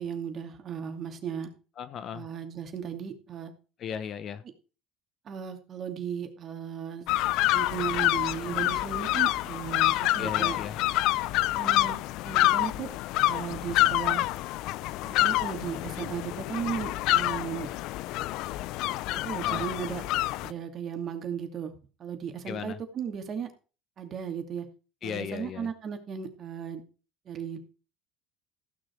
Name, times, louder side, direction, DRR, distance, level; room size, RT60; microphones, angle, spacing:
voice 1, 0.0-1.5 2.1-3.5 5.3-7.0 7.5-10.6 11.5-12.0 12.2-12.9 13.2-14.3 15.0-17.7 19.1-20.0 20.4-21.7 22.0-23.5 24.0-24.7 25.0-26.8 27.3-27.6, right 7 dB, 45° right, 6 dB, 2.5 m, -36 dB
voice 2, 1.8-2.3 3.8-4.4 10.2-10.8 19.4-19.7 22.5-22.8 25.0-25.7, left 8 dB, 50° left, 15 dB, 1.0 m, -36 dB
sound 1, 7.1-20.5, left 16 dB, 65° left, 0.5 m, -27 dB
15.0 x 6.4 x 4.7 m, 0.35 s
supercardioid pair, 85°, 0 cm